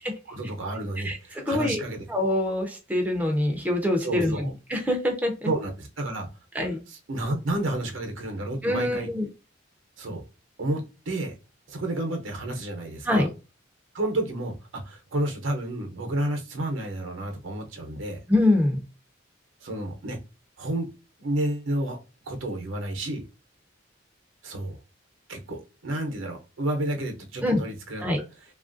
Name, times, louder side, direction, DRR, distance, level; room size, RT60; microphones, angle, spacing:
voice 1, 0.3-2.1 4.0-4.5 5.4-6.3 7.1-9.1 10.0-10.2 10.6-11.3 11.7-13.3 13.9-18.2 19.6-20.2 20.6-20.9 21.2-22.0 22.3-23.2 24.4-24.8 25.3-28.0, right 1 dB, 75° right, 4 dB, 0.7 m, -30 dB
voice 2, 1.0-1.8 2.1-5.5 6.5-6.8 8.6-9.3 13.1-13.3 18.3-18.8 27.4-27.6 28.0-28.2, left 1 dB, 10° right, 2 dB, 0.5 m, -25 dB
3.0 x 2.4 x 2.5 m, 0.30 s
head